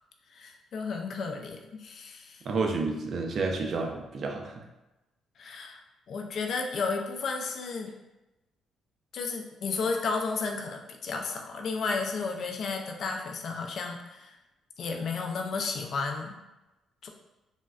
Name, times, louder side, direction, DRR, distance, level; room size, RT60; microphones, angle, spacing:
voice 1, 0.3-2.4 5.4-5.8 6.1-7.9 9.1-14.3 14.8-16.4 17.0-17.1, left 4 dB, 60° left, 3 dB, 0.4 m, -33 dB
voice 2, 2.4-4.6, right 3 dB, 55° right, 3 dB, 0.4 m, -30 dB
3.5 x 2.1 x 2.3 m, 1.0 s
cardioid pair, 90°, 0 cm